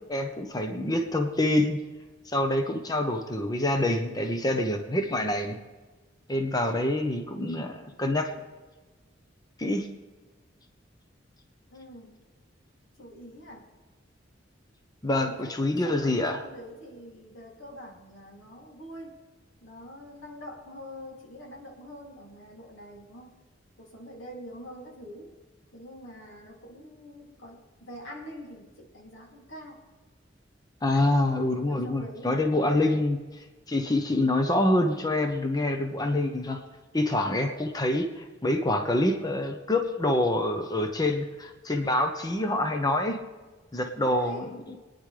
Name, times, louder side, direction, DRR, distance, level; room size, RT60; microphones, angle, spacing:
voice 1, 0.1-1.8 2.3-5.6 6.3-8.3 9.6-9.9 15.0-16.4 30.8-33.2 33.7-36.6 36.9-43.2 43.7-44.4, left 1 dB, 20° left, 5 dB, 0.9 m, -26 dB
voice 2, 11.7-12.3 13.0-13.7 15.2-19.2 19.6-23.4 23.8-25.3 25.7-29.8 30.9-33.1 44.0-44.6, equal, 85° left, -1 dB, 2.9 m, -45 dB
25.5 x 9.9 x 3.4 m, 1.3 s
head